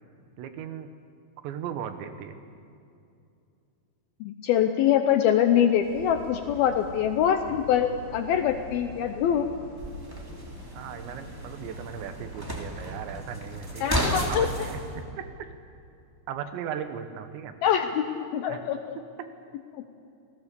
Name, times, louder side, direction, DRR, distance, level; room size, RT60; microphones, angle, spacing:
voice 1, 0.4-0.9 1.4-2.4 10.7-14.0 14.3-15.3 16.3-17.6 18.5-18.6 19.2-19.3, right 8 dB, 80° right, 8 dB, 3.4 m, -37 dB
voice 2, 4.2-9.5 13.8-14.5 17.6-19.0, left 9 dB, 80° left, 7 dB, 2.3 m, -24 dB
sound 1, 5.8-14.9, equal, 50° right, 4.4 m, -44 dB
sound 2, 9.8-14.8, equal, 10° right, 1.4 m, -33 dB
29.0 x 17.5 x 6.9 m, 2.5 s
omnidirectional pair, 5.1 m